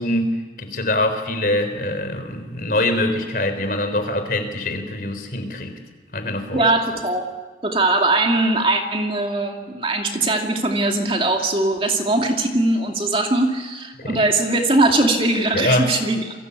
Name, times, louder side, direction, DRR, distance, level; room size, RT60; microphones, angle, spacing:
voice 1, 0.0-5.8 6.1-6.6 14.0-14.2 15.5-15.9, left 1 dB, 50° left, 7 dB, 3.9 m, -23 dB
voice 2, 6.5-7.3 7.6-16.2, right 2 dB, 30° right, 2 dB, 2.5 m, -20 dB
28.5 x 23.0 x 8.4 m, 1.3 s
head